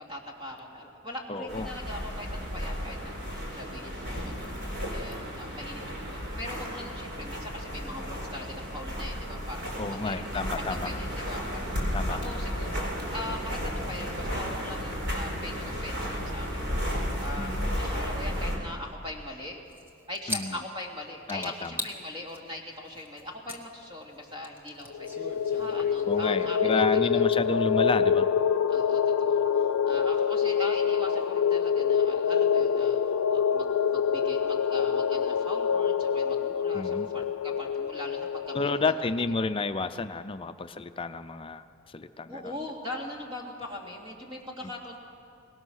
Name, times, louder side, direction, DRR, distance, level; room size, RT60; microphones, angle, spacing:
voice 1, 0.0-4.5 4.9-19.6 20.1-27.2 28.7-33.0 33.3-38.8 42.3-45.0, left 1 dB, 25° right, -1 dB, 2.8 m, -41 dB
voice 2, 1.3-1.7 9.8-10.9 11.9-12.2 17.4-17.8 20.3-20.6 21.3-21.8 26.0-28.3 36.7-37.1 38.5-42.5 44.6-44.7, left 3 dB, 25° left, 10 dB, 0.5 m, -31 dB
sound 1, 1.5-18.6, equal, 55° right, 4.6 m, -33 dB
sound 2, 19.7-20.9 21.3-22.0 22.3-23.6 23.9-26.5, left 1 dB, 10° right, 1.4 m, -39 dB
sound 3, 24.9-39.3, left 7 dB, 90° left, 0.5 m, -26 dB
22.5 x 19.5 x 6.4 m, 2.5 s
head